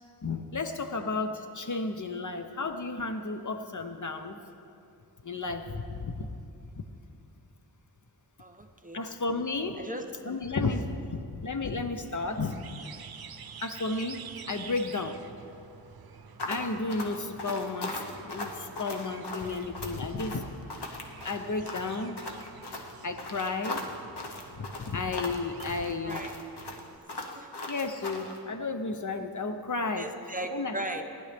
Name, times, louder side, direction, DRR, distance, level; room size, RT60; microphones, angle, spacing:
voice 1, 0.2-4.4 5.2-6.3 6.8-6.9 8.9-9.8 10.2-12.6 13.6-15.2 16.5-20.5 21.2-22.2 23.0-23.9 24.6-26.2 27.7-30.1 30.5-30.8, left 3 dB, 45° left, 7 dB, 0.7 m, -33 dB
voice 2, 8.4-9.0 9.8-10.1 10.7-10.8 26.0-26.3 27.3-27.5 30.0-31.0, right 1 dB, 20° right, 4 dB, 0.8 m, -37 dB
sound 1, 12.1-27.0, right 6 dB, 60° right, 0.6 m, -49 dB
sound 2, 16.4-28.4, left 2 dB, 75° left, 1.2 m, -38 dB
18.5 x 11.0 x 3.4 m, 2.6 s
wide cardioid pair, 90°, 41 cm